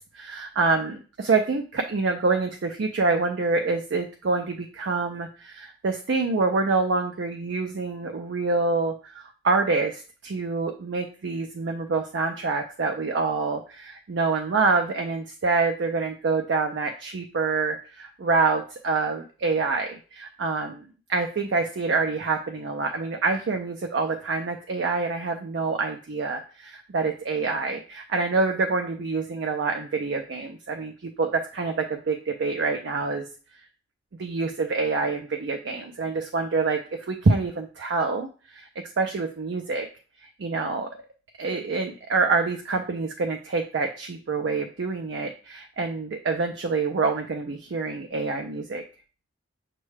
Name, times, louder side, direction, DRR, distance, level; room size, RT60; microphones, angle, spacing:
voice 1, 0.1-20.8 21.1-33.3 34.2-38.7 39.0-39.9 40.4-41.0 41.4-48.8, right 4 dB, 60° right, 4 dB, 0.4 m, -26 dB
6.2 x 2.2 x 3.2 m, 0.37 s
head